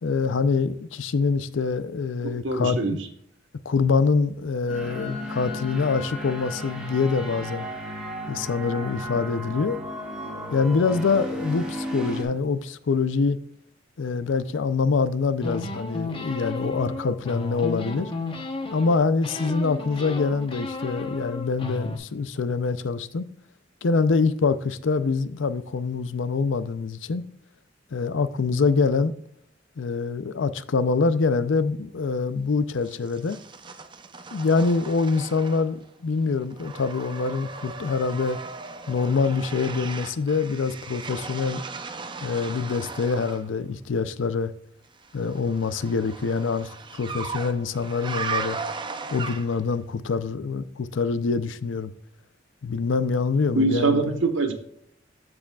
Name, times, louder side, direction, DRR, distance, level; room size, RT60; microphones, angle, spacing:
voice 1, 0.0-3.0 3.7-7.7 8.3-9.8 10.5-13.4 14.0-18.1 18.7-23.3 23.8-27.2 27.9-29.1 29.8-33.4 34.3-38.4 38.9-41.6 42.2-44.5 45.1-48.6 49.1-51.9 52.6-54.1, left 4 dB, 85° left, 0.5 m, -25 dB
voice 2, 2.2-2.9 53.5-54.5, right 3 dB, 85° right, 1.1 m, -23 dB
sound 1, 4.7-12.2, equal, 5° right, 1.8 m, -34 dB
sound 2, 15.4-19.0 19.2-22.0, left 2 dB, 30° left, 0.9 m, -33 dB
sound 3, 32.8-35.9 36.2-43.5 45.0-49.7, right 4 dB, 25° right, 0.5 m, -37 dB
14.0 x 5.0 x 2.3 m
head